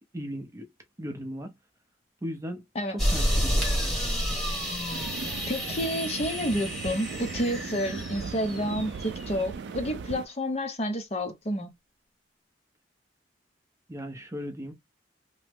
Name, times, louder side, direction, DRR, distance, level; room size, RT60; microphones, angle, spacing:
voice 1, 0.1-0.7 1.0-1.5 2.2-3.7 13.9-14.7, equal, 15° right, 0.6 m, -37 dB
sound 1, 3.0-9.4, equal, ahead, 1.1 m, -30 dB
sound 2, 4.9-10.3, right 5 dB, 65° right, 0.3 m, -38 dB
voice 2, 5.5-11.7, equal, 35° left, 0.7 m, -30 dB
3.0 x 2.0 x 3.4 m
head